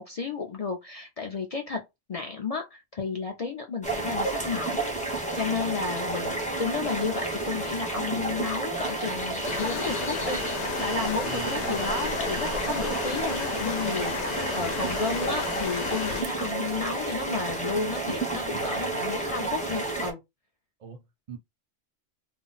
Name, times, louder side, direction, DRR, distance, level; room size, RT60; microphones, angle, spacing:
voice 1, 0.0-1.8 2.1-4.9 5.4-20.2, left 4 dB, 60° left, 0.4 m, -32 dB
sound 1, 3.8-20.1, right 2 dB, 10° left, 0.6 m, -31 dB
sound 2, 9.4-16.2, left 7 dB, 75° left, 0.8 m, -34 dB
Alarm, 9.4-16.3, right 5 dB, 80° right, 0.9 m, -42 dB
voice 2, 11.2-12.0 18.5-19.0 20.8-21.4, right 7 dB, 45° right, 0.5 m, -42 dB
2.4 x 2.0 x 3.9 m
omnidirectional pair, 1.2 m